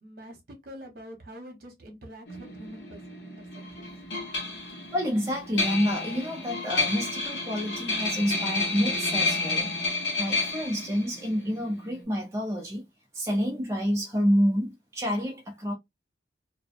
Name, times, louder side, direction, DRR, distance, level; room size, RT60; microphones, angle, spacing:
voice 1, 0.0-3.0 3.8-3.9, equal, 55° right, 1.0 m, -45 dB
sound 1, 2.3-12.0, left 3 dB, 70° left, 1.1 m, -31 dB
voice 2, 4.9-12.9 13.1-15.7, equal, 15° right, 0.5 m, -28 dB
2.4 x 2.2 x 2.5 m
head